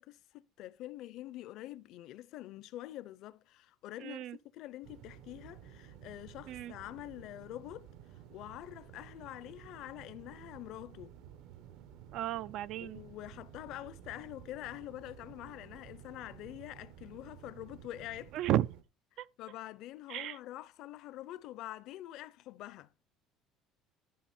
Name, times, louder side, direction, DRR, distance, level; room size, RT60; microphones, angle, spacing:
voice 1, 0.0-7.9 8.3-11.2 12.8-18.3 19.4-22.9, left 15 dB, 55° left, 0.6 m, -46 dB
voice 2, 4.0-4.4 6.5-6.7 12.1-13.0 18.3-18.7 19.2-19.3 20.1-20.4, right 13 dB, 55° right, 0.4 m, -33 dB
sound 1, 4.8-18.8, right 10 dB, 70° right, 1.4 m, -53 dB
12.0 x 5.2 x 4.4 m
cardioid pair, 160°, 0 cm